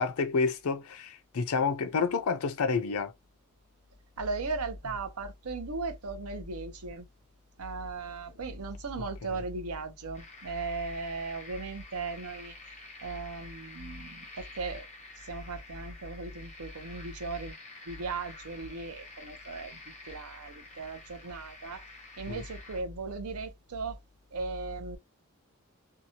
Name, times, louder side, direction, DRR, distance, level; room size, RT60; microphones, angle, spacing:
voice 1, 0.0-3.1 22.3-22.4, left 5 dB, 75° left, 0.5 m, -29 dB
voice 2, 4.2-7.1 7.6-12.5 13.0-14.9 15.2-17.5 17.9-19.8 20.1-21.8 22.2-24.0 24.3-25.0, right 3 dB, 80° right, 0.7 m, -37 dB
sound 1, 10.1-22.8, left 2 dB, 30° left, 0.7 m, -49 dB
2.8 x 2.3 x 2.8 m
head